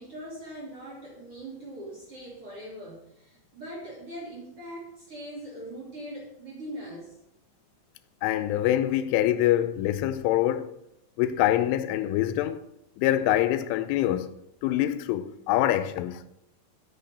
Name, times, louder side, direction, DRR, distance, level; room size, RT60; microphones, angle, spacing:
voice 1, 0.0-7.1, right 1 dB, 40° right, 2.5 m, -41 dB
voice 2, 8.2-10.7 11.2-12.6 13.0-14.3 14.6-16.2, left 13 dB, 85° left, 3.1 m, -25 dB
8.5 x 6.2 x 6.5 m
omnidirectional pair, 5.6 m